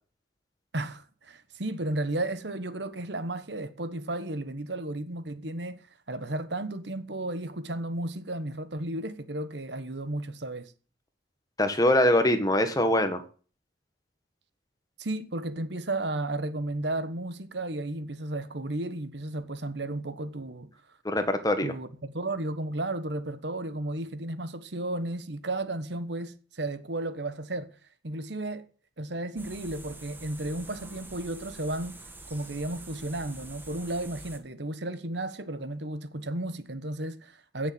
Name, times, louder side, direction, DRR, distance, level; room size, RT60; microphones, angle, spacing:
voice 1, 0.7-10.7 15.0-21.0 21.6-27.7 28.0-28.7 29.0-32.0 32.3-37.7, right 2 dB, 65° right, 1.3 m, -33 dB
voice 2, 11.6-13.2 21.0-21.7, left 1 dB, 20° left, 1.6 m, -23 dB
sound 1, 29.4-34.4, right 2 dB, 10° right, 1.8 m, -46 dB
16.5 x 6.8 x 7.8 m
head